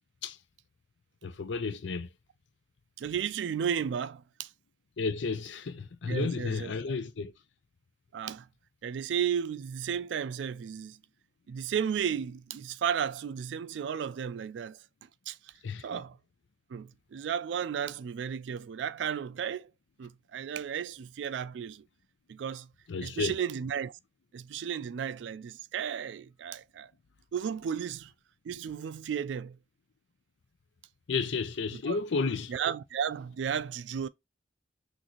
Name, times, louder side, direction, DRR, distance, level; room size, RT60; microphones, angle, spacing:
voice 1, 1.2-2.1 5.0-7.3 15.6-16.0 22.9-23.4 31.1-32.5, left 4 dB, 85° left, 0.5 m, -32 dB
voice 2, 3.0-4.5 6.1-6.9 8.1-8.5 8.8-11.0 11.5-14.8 15.3-15.4 15.8-16.2 16.7-19.7 20.0-21.8 22.3-22.7 23.0-23.9 24.3-26.9 27.3-28.1 28.5-29.6 31.9-32.0 32.5-34.1, right 8 dB, 75° right, 0.3 m, -34 dB
6.2 x 2.6 x 3.0 m
head